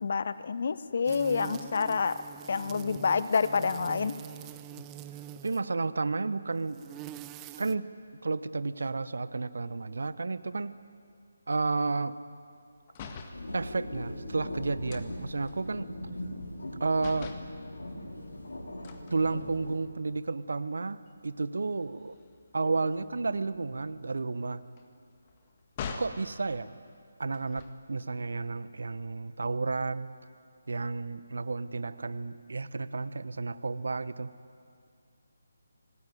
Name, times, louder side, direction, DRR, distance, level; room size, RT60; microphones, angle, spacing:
voice 1, 0.0-2.2 2.5-4.1, left 5 dB, 45° left, 15 dB, 0.9 m, -28 dB
sound 1, 1.1-5.7 6.6-7.8, right 12 dB, 15° right, 0.6 m, -44 dB
voice 2, 5.4-6.8 7.6-7.9 8.2-10.8 11.5-12.2 13.5-15.9 16.8-17.3 19.1-22.2 22.5-24.6 26.0-26.7 27.2-30.1 30.7-34.3, right 3 dB, 60° right, 14 dB, 1.0 m, -32 dB
sound 2, 12.9-13.4 14.9-16.7 17.0-17.5 18.8-19.9 20.4-20.6 20.9-26.2 27.3-28.0, left 5 dB, 25° left, 1.8 m, -45 dB
sound 3, 13.3-19.8, left 1 dB, 65° left, 4.4 m, -40 dB
26.0 x 19.0 x 9.2 m, 2.3 s
figure-of-eight pair, 150°, 0 cm